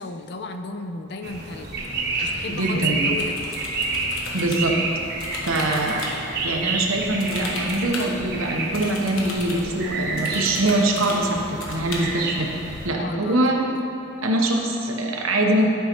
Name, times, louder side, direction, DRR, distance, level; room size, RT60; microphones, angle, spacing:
voice 1, 0.0-1.8 2.2-3.4 13.0-13.4 13.7-13.8, left 3 dB, 55° left, 7 dB, 0.5 m, -34 dB
sound 1, 1.2-12.9, right 3 dB, 50° right, 1.1 m, -29 dB
voice 2, 2.5-3.0 4.3-4.8 5.5-6.1 6.4-12.5 12.8-13.6 14.2-15.7, right 1 dB, 85° right, 1 dB, 1.0 m, -23 dB
sound 2, 3.1-4.7 5.2-6.1 7.2-8.1 8.7-9.6 10.2-11.3 11.6-12.0, left 2 dB, 90° left, 1.2 m, -35 dB
11.5 x 5.6 x 3.0 m, 2.8 s
head